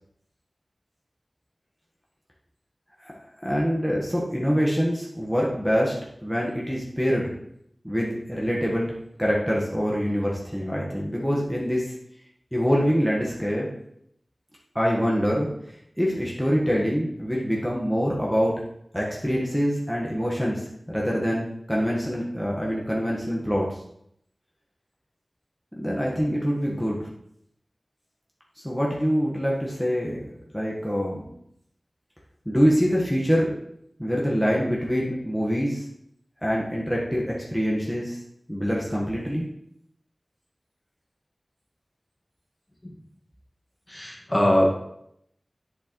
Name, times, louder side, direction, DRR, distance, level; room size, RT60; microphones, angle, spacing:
voice 1, 3.4-5.9 6.2-7.3 7.8-8.9 9.2-11.8 12.5-13.7 14.7-18.5 18.9-20.6 20.9-23.8 25.7-27.1 28.6-30.3 30.5-31.3 32.4-33.5 34.0-35.8 36.4-38.2 38.5-39.5, equal, ahead, -4 dB, 1.5 m, -25 dB
voice 2, 43.9-44.7, equal, 30° left, -2 dB, 1.9 m, -22 dB
8.4 x 6.5 x 3.2 m, 0.73 s
wide cardioid pair, 60°, 0 cm